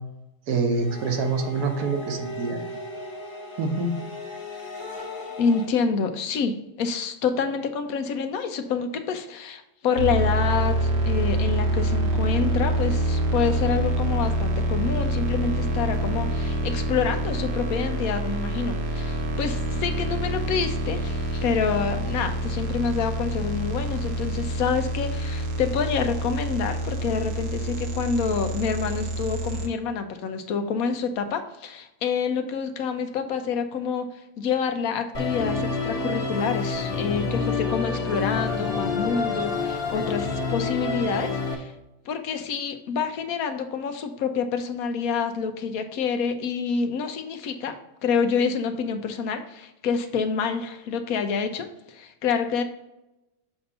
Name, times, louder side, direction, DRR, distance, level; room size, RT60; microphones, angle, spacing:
voice 1, 0.5-2.6 3.6-3.9, right 4 dB, 80° right, 4 dB, 1.4 m, -26 dB
sound 1, 0.7-5.6, left 1 dB, 15° left, 1.3 m, -37 dB
voice 2, 5.4-34.1 34.4-41.7 42.1-52.6, left 6 dB, 70° left, 7 dB, 1.0 m, -27 dB
sound 2, 10.0-29.7, right 1 dB, 60° right, 1.1 m, -26 dB
Musical instrument, 35.1-41.5, left 4 dB, 40° left, 1.1 m, -27 dB
6.8 x 2.7 x 5.4 m, 0.95 s
omnidirectional pair, 1.6 m